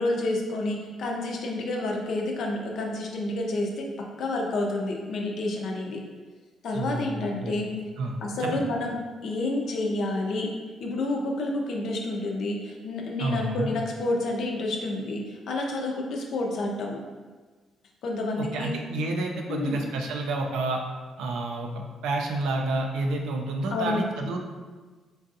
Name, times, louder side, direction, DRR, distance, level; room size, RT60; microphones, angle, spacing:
voice 1, 0.0-6.0 6.6-7.8 8.2-9.0 9.2-10.5 10.8-17.0 18.0-18.8 19.5-19.8 23.7-24.0, left 2 dB, 70° left, 0 dB, 0.6 m, -29 dB
voice 2, 6.7-7.5 8.0-8.6 13.2-13.7 18.4-20.8 21.2-24.4, right 2 dB, 85° right, 2 dB, 0.4 m, -29 dB
3.8 x 2.4 x 2.6 m, 1.4 s
cardioid pair, 90°, 0 cm